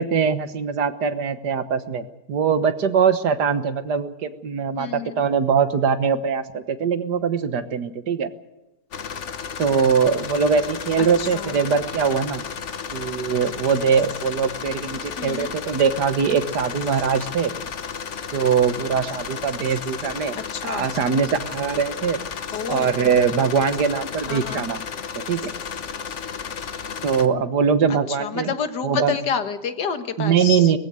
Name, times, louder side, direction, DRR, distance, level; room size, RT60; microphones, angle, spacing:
voice 1, 0.0-8.3 9.6-12.4 12.9-17.5 18.3-20.4 20.7-22.2 22.7-24.8 25.3-25.4 27.0-28.5 28.8-29.2 30.2-30.8, right 6 dB, 85° right, 11 dB, 1.8 m, -22 dB
voice 2, 4.8-5.2 11.0-11.5 15.2-15.5 20.5-20.8 22.5-22.9 24.3-24.7 27.9-30.7, left 7 dB, 85° left, 9 dB, 2.1 m, -29 dB
sound 1, 8.9-27.3, left 6 dB, 50° left, 1.3 m, -33 dB
21.5 x 15.0 x 9.4 m, 1.0 s
omnidirectional pair, 1.8 m